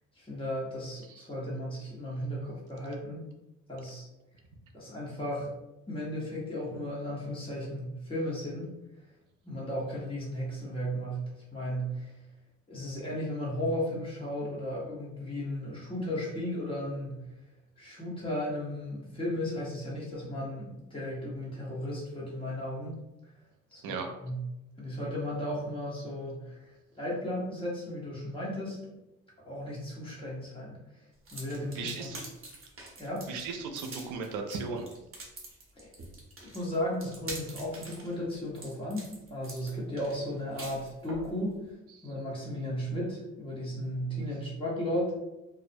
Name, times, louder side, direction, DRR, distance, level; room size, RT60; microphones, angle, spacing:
voice 1, 0.2-3.3 3.7-4.1 4.7-5.5 5.9-8.7 9.4-12.1 12.7-17.2 17.8-23.0 23.7-23.8 24.2-24.4 24.8-28.8 29.4-30.8 31.3-32.1 33.0-33.3 35.8-35.9 36.4-41.6 42.0-45.1, equal, 15° left, -6 dB, 1.0 m, -35 dB
sound 1, 31.2-41.3, right 2 dB, 45° right, 0.8 m, -45 dB
voice 2, 31.7-32.2 33.3-34.8 41.9-42.1, right 4 dB, 90° right, 4 dB, 0.5 m, -36 dB
2.4 x 2.0 x 2.5 m, 0.96 s
cardioid pair, 90°, 30 cm